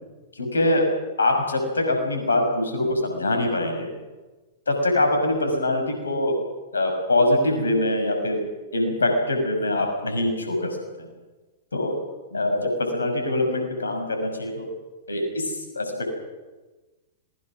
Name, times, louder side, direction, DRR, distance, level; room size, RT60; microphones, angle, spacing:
voice 1, 0.4-0.9 1.2-3.9 4.7-6.3 6.7-8.4 8.7-11.1 11.7-11.9 12.3-14.7 15.1-16.2, left 1 dB, 80° left, 4 dB, 6.1 m, -23 dB
26.0 x 21.0 x 6.2 m, 1.2 s
figure-of-eight pair, 100°, 0 cm